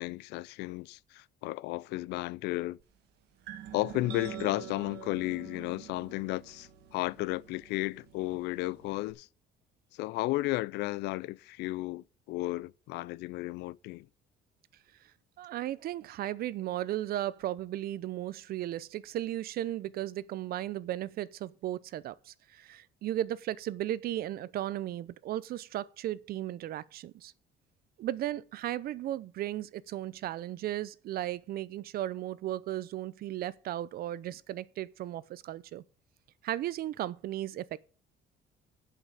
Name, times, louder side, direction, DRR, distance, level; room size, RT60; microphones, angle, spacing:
voice 1, 0.0-2.8 3.7-9.3 9.9-14.1, left 19 dB, 85° left, 0.4 m, -34 dB
sound 1, 3.5-9.1, right 8 dB, 85° right, 1.6 m, -46 dB
voice 2, 15.4-27.3 28.0-35.8 36.4-37.8, right 13 dB, 65° right, 0.7 m, -35 dB
8.3 x 7.8 x 7.0 m
cardioid pair, 110°, 17 cm